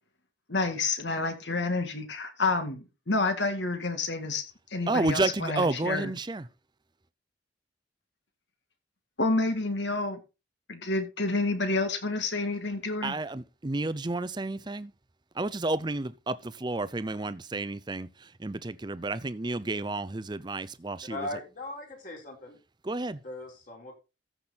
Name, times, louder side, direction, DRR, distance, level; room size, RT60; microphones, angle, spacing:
voice 1, 0.5-4.4 4.7-6.1 9.2-10.2 10.7-13.1, left 3 dB, 70° left, 2.2 m, -29 dB
voice 2, 4.9-6.4 13.0-14.9 15.4-21.3 22.8-23.2, right 2 dB, 25° right, 0.6 m, -31 dB
voice 3, 21.1-22.6 23.2-23.9, left 1 dB, 45° left, 4.4 m, -39 dB
14.5 x 6.1 x 4.2 m
head